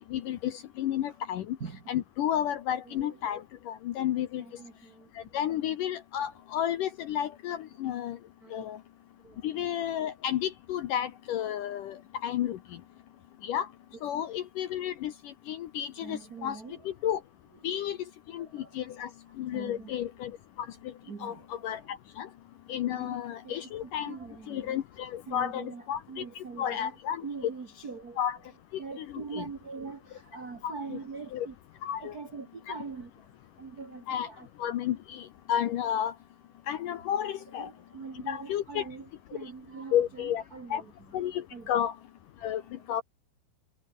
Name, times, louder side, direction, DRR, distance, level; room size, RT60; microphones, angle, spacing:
voice 1, 0.1-1.6 1.9-4.4 5.3-8.2 8.5-8.8 9.4-12.0 12.2-12.6 13.4-13.7 14.0-15.1 15.5-16.6 16.9-17.2 17.6-18.0 18.3-18.5 18.8-19.1 19.4-20.3 21.2-21.8 22.2-22.3 22.7-24.1 24.5-26.2 26.6-27.2 28.2-28.4 29.0-29.1 29.3-29.5 30.6-31.0 31.3-31.5 31.8-32.1 34.1-34.3 34.6-36.1 36.7-37.7 38.3-38.9 39.9-40.4 40.7-40.8 41.1-41.9 42.4-42.6 42.9-43.0, left 10 dB, 70° left, 2.0 m, -31 dB
voice 2, 1.6-2.0 2.8-3.3 4.1-5.7 6.3-6.4 8.4-8.7 9.2-9.8 13.9-14.2 16.0-16.9 17.5-17.9 18.2-19.9 21.0-21.9 22.9-24.8 25.2-26.9 27.2-28.5 28.8-31.6 32.0-33.3 33.6-34.8 37.3-41.2 41.5-41.7 42.4-43.0, right 4 dB, 80° right, 0.8 m, -44 dB
omnidirectional pair, 5.0 m